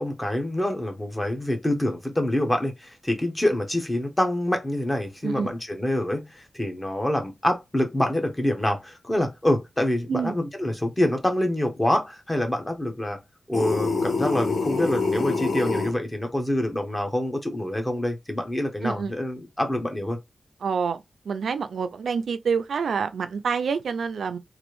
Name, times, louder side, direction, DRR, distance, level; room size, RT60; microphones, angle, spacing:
voice 1, 0.0-13.2 13.5-20.2, left 1 dB, 15° left, 0.7 m, -26 dB
sound 1, 13.5-15.9, left 3 dB, 65° left, 0.8 m, -25 dB
voice 2, 18.8-19.1 20.6-21.0 21.3-24.4, right 6 dB, 80° right, 0.3 m, -27 dB
3.0 x 2.5 x 3.0 m
wide cardioid pair, 155°, 0 cm